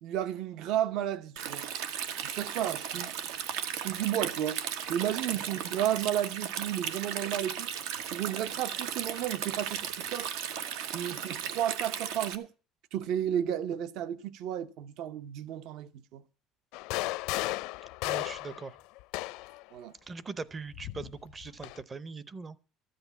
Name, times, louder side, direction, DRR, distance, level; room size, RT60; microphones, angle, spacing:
voice 1, 0.0-1.7 2.2-3.1 3.7-4.6 4.9-7.7 8.1-10.3 10.9-12.5 12.9-16.2 19.7-19.9, right 11 dB, 55° right, 0.8 m, -33 dB
Stream, 1.4-12.4, right 9 dB, 80° right, 1.2 m, -36 dB
sound 1, 16.7-19.6 20.7-21.8, left 20 dB, 70° left, 0.5 m, -35 dB
voice 2, 18.0-18.8 20.1-22.6, right 4 dB, 20° right, 0.6 m, -41 dB
13.5 x 7.9 x 7.1 m
cardioid pair, 165°, 0 cm